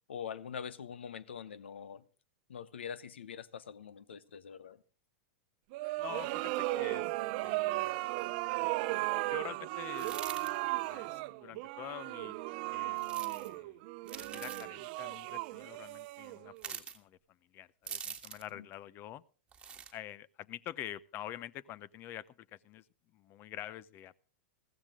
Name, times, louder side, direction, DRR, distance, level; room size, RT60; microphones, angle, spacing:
voice 1, 0.1-2.0 2.5-4.8 18.6-18.7, left 7 dB, 85° left, 0.8 m, -44 dB
sound 1, 5.7-16.7, right 20 dB, 55° right, 0.7 m, -36 dB
voice 2, 6.0-7.1 7.4-8.0 9.3-10.2 10.8-12.4 12.7-13.0 13.3-13.8 14.2-19.2 19.9-22.9 23.1-24.1, left 12 dB, 40° left, 0.6 m, -47 dB
sound 2, 9.9-10.5 13.0-13.5 14.1-14.7 16.6-17.0 17.9-18.5 19.5-19.9, right 7 dB, 15° right, 1.6 m, -43 dB
15.0 x 15.0 x 3.6 m
hypercardioid pair, 115°, 6 cm